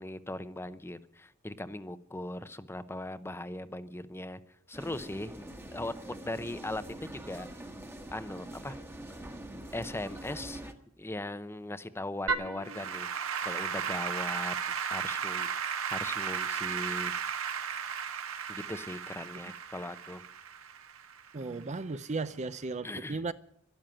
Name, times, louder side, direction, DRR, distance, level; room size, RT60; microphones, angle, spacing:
voice 1, 0.0-4.4 4.7-7.7 8.1-8.8 9.7-10.6 11.0-13.1 13.4-14.6 14.9-17.1 18.5-20.2 22.8-23.2, left 1 dB, 10° left, 0.7 m, -39 dB
sound 1, 4.7-10.7, right 1 dB, 10° right, 1.3 m, -44 dB
Applause / Keyboard (musical), 12.3-21.6, right 6 dB, 65° right, 1.4 m, -35 dB
voice 2, 21.3-23.3, right 3 dB, 30° right, 0.6 m, -35 dB
12.5 x 12.0 x 8.9 m
head